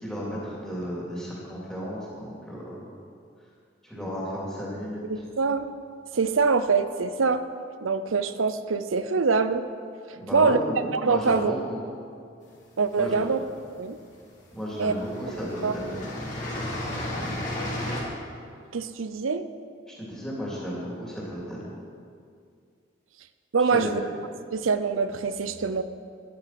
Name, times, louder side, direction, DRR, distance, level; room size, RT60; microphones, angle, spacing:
voice 1, 0.0-3.0 3.8-5.0 10.2-11.8 13.0-13.3 14.5-15.9 19.9-21.7 23.7-23.8, equal, 5° left, -6 dB, 3.0 m, -34 dB
voice 2, 5.1-5.7 6.1-7.4 7.8-9.7 10.1-10.6 10.9-11.5 12.8-13.4 13.7-14.0 14.8-14.9 15.6-15.7 18.7-19.5 23.5-24.0 24.5-25.8, right 4 dB, 90° right, 11 dB, 0.7 m, -24 dB
sound 1, 12.6-13.5 14.4-14.5 14.8-18.0, left 1 dB, 40° left, 3.1 m, -33 dB
12.0 x 9.9 x 6.0 m, 2.3 s
head